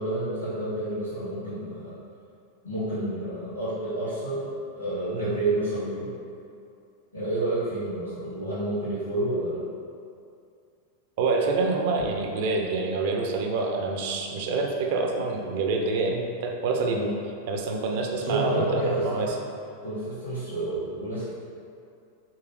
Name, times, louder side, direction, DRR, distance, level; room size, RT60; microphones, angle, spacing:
voice 1, 0.0-2.0 2.6-6.1 7.1-9.6 16.9-17.1 18.1-19.4 19.8-21.4, right 2 dB, 75° left, -14 dB, 1.2 m, -29 dB
voice 2, 11.2-17.1 17.5-19.3, right 3 dB, 50° right, 1 dB, 0.4 m, -27 dB
3.5 x 3.3 x 3.0 m, 2.4 s
figure-of-eight pair, 90°, 0 cm